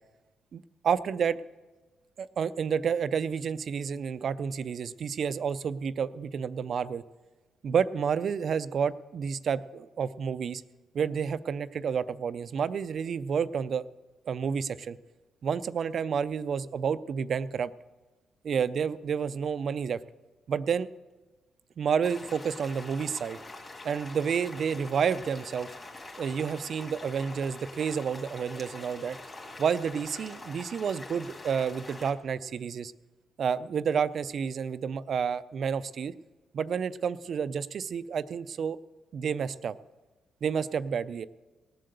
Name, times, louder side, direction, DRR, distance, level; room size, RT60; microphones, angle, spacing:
voice 1, 0.5-1.4 2.2-7.0 7.6-10.6 10.9-13.9 14.3-15.0 15.4-17.7 18.4-20.0 20.5-20.9 21.8-23.4 23.8-25.7 26.2-29.2 29.6-32.9 33.4-36.1 36.5-38.8 39.1-39.8 40.4-41.3, right 7 dB, 55° right, 15 dB, 0.5 m, -30 dB
sound 1, 22.0-32.1, left 2 dB, 30° left, 2.5 m, -45 dB
18.0 x 7.8 x 6.7 m, 1.2 s
cardioid pair, 90°, 0 cm